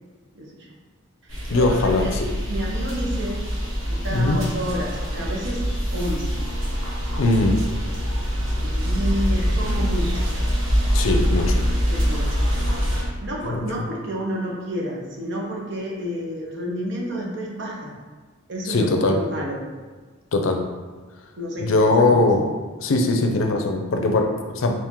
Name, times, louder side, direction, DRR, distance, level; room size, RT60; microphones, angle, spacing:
voice 1, 0.3-0.7 1.5-2.1 2.5-3.5 3.9-5.7 5.9-6.4 8.6-10.3 11.9-12.3 13.2-17.9 18.5-19.6 21.4-22.2, equal, 60° right, -2 dB, 0.8 m, -30 dB
sound 1, 1.3-13.0, equal, 80° right, 1.2 m, -24 dB
voice 2, 1.5-2.3 4.1-4.4 7.2-7.6 10.9-11.6 13.5-13.7 18.7-19.2 20.3-20.6 21.6-22.4 22.8-24.7, left 2 dB, 70° left, 4 dB, 0.5 m, -20 dB
4.4 x 2.5 x 3.6 m, 1.4 s
head